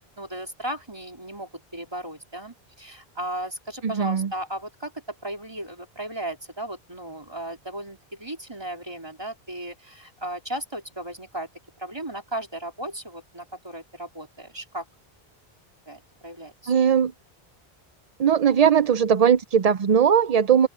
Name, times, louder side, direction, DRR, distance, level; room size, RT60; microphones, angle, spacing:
voice 1, 0.2-11.5 11.8-14.8 15.9-16.7, right 1 dB, 25° right, 3.8 m, -35 dB
voice 2, 3.8-4.3 16.7-17.1 18.2-20.7, right 8 dB, 45° right, 0.5 m, -19 dB
open air
omnidirectional pair, 1.0 m